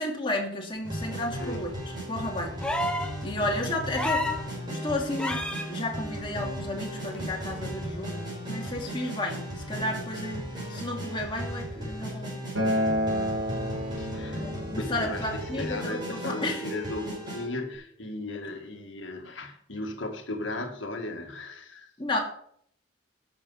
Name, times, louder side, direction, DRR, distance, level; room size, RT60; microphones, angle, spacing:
voice 1, 0.0-1.7 2.1-2.9 3.2-4.4 4.7-8.2 8.5-12.4 14.4-16.6 22.0-22.2, left 1 dB, 25° left, 2.6 m, -32 dB
sound 1, 0.8-17.5, equal, 25° right, 5.6 m, -36 dB
sound 2, 2.6-3.1 3.9-4.4 5.2-5.7 7.1-7.2, left 2 dB, 5° left, 1.0 m, -29 dB
Acoustic guitar, 12.6-17.8, equal, 75° right, 3.9 m, -32 dB
voice 2, 14.0-21.9, left 2 dB, 70° left, 1.9 m, -36 dB
12.0 x 7.1 x 5.7 m
head